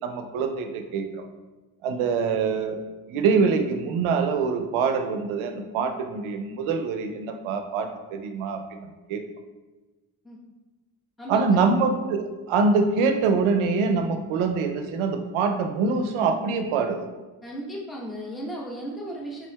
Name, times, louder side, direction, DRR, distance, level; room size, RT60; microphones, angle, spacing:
voice 1, 0.0-1.3 1.8-2.8 3.1-9.2 11.3-17.0, right 4 dB, 75° right, 6 dB, 0.6 m, -24 dB
voice 2, 11.2-11.6 17.4-19.5, right 1 dB, ahead, -2 dB, 0.8 m, -35 dB
4.3 x 3.9 x 2.2 m, 1.2 s
supercardioid pair, 50°, 50 cm